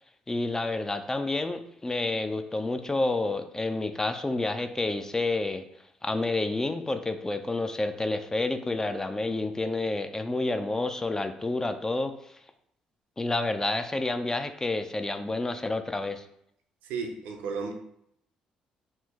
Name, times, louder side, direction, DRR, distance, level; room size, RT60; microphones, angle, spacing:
voice 1, 0.3-5.6 6.0-12.1 13.2-16.2, left 2 dB, 20° left, 8 dB, 0.3 m, -29 dB
voice 2, 16.8-17.7, right 5 dB, 80° right, 3 dB, 0.5 m, -33 dB
2.9 x 2.0 x 3.4 m, 0.74 s
supercardioid pair, 60°, 3 cm